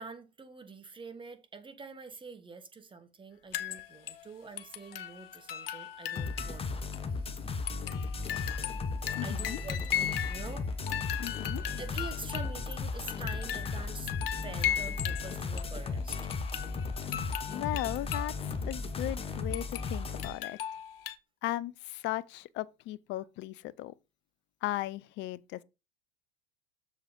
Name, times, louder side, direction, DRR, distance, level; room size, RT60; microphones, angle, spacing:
voice 1, 0.0-6.8 9.2-11.5 11.8-14.1 14.4-16.3, right 4 dB, 15° right, 1.4 m, -46 dB
sound 1, 3.5-4.2 4.6-6.7 6.9-7.0 7.7-10.6 10.9-15.8 16.1-18.3 18.7-18.8 19.5-21.1, left 10 dB, 70° left, 1.0 m, -37 dB
sound 2, 6.2-20.3, left 4 dB, 20° left, 1.0 m, -36 dB
voice 2, 9.1-9.6 11.2-11.6 17.5-18.4 18.7-20.6 21.4-23.9 24.6-25.6, left 15 dB, 40° left, 0.6 m, -36 dB
7.2 x 4.8 x 5.1 m
figure-of-eight pair, 80°, 30 cm